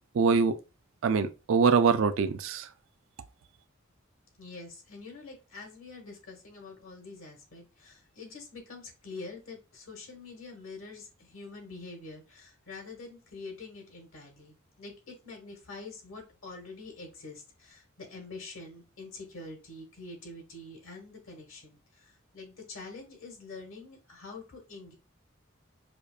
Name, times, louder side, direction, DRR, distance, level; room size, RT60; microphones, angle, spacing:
voice 1, 0.1-0.6 1.0-2.7, right 5 dB, 70° right, 0.4 m, -24 dB
voice 2, 4.4-24.9, left 3 dB, 75° left, 1.2 m, -46 dB
4.9 x 2.4 x 2.3 m
head